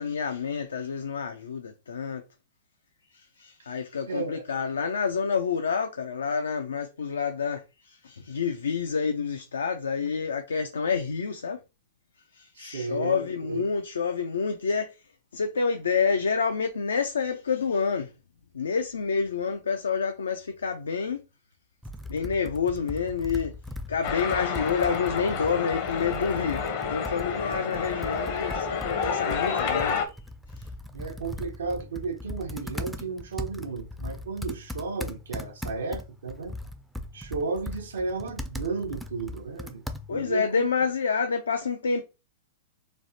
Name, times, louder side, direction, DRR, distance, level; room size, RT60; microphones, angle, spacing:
voice 1, 0.0-2.2 3.4-11.6 12.3-14.9 15.3-18.1 18.5-21.2 22.1-23.5 23.9-26.6 26.9-30.0 40.1-42.0, left 5 dB, 90° left, 0.3 m, -28 dB
voice 2, 4.1-4.6 12.6-13.6 30.9-36.6 37.1-39.8 40.1-40.7, right 4 dB, 80° right, 0.7 m, -33 dB
Computer keyboard, 21.8-40.3, left 1 dB, ahead, 0.3 m, -39 dB
sound 1, 24.0-30.1, left 6 dB, 55° left, 0.6 m, -29 dB
3.1 x 2.1 x 2.6 m
hypercardioid pair, 125°, 0 cm